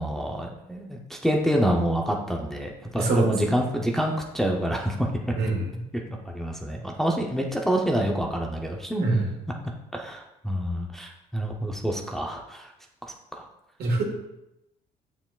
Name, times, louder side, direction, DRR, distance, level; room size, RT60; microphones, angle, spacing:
voice 1, 0.0-5.5 6.3-9.0 9.9-12.7 13.3-13.5, equal, ahead, 0 dB, 0.7 m, -27 dB
voice 2, 2.9-3.3 5.4-5.7 9.0-9.3 13.8-14.0, right 3 dB, 65° right, 0 dB, 1.7 m, -24 dB
6.6 x 6.0 x 2.4 m, 0.87 s
cardioid pair, 110°, 17 cm